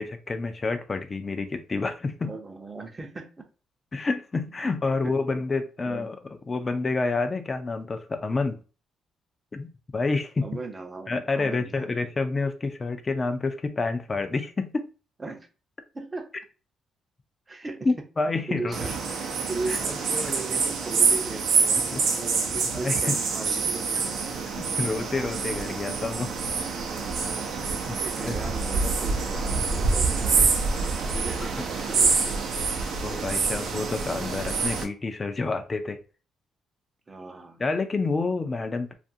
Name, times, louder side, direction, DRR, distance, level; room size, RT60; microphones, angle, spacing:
voice 1, 0.0-2.4 3.9-6.2 6.5-8.6 9.5-10.5 11.1-14.9 17.9-18.8 19.7-19.8 21.9-22.0 22.7-23.2 24.6-26.3 27.9-28.0 28.2-28.4 33.0-36.0 37.6-38.9, left 3 dB, 30° left, 0.4 m, -28 dB
voice 2, 2.2-3.4 5.0-5.1 5.9-6.1 10.4-12.0 15.2-15.5 15.9-16.3 17.5-17.9 18.5-19.0 19.5-24.3 28.0-30.6 31.1-32.6 37.1-37.6, right 3 dB, 25° right, 0.6 m, -37 dB
sound 1, 18.7-34.8, right 4 dB, 70° right, 0.5 m, -26 dB
2.5 x 2.4 x 2.6 m
cardioid pair, 90°, 0 cm